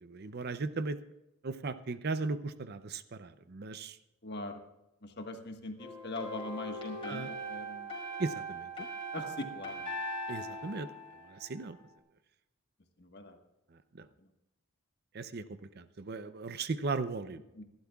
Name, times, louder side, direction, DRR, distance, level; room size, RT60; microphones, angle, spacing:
voice 1, 0.0-1.0 1.4-4.0 7.0-7.3 8.2-8.7 10.3-10.9 11.3-11.8 13.9-14.1 15.1-17.4, right 3 dB, 45° right, 12 dB, 0.5 m, -37 dB
voice 2, 4.2-4.6 5.0-7.9 9.1-9.9 13.0-13.4 17.5-17.6, left 2 dB, 50° left, 4 dB, 1.4 m, -41 dB
sound 1, 5.8-11.8, right 1 dB, 25° left, 4.2 m, -40 dB
26.0 x 12.0 x 2.4 m, 0.93 s
head